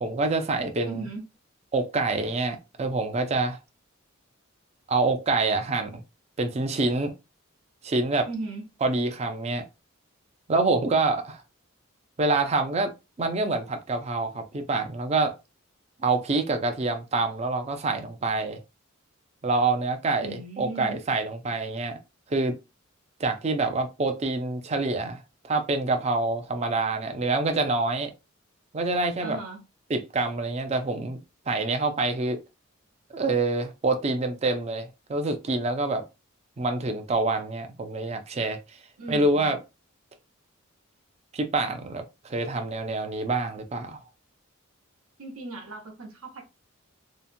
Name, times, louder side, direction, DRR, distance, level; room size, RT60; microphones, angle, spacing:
voice 1, 0.0-1.0 1.7-3.6 4.9-6.0 6.4-7.1 7.8-8.3 8.8-9.6 10.5-11.4 12.2-12.9 13.2-15.3 16.0-18.6 19.4-22.0 22.3-22.5 23.2-28.1 28.7-29.4 29.9-31.2 31.5-32.4 33.1-36.1 36.6-38.8 39.1-39.6 41.3-44.0, right 3 dB, 30° right, 0.4 m, -26 dB
voice 2, 0.9-1.3 8.3-8.7 20.2-21.0 29.2-29.6 39.0-39.5 45.2-46.4, right 3 dB, 85° right, 0.9 m, -37 dB
2.8 x 2.1 x 2.5 m
head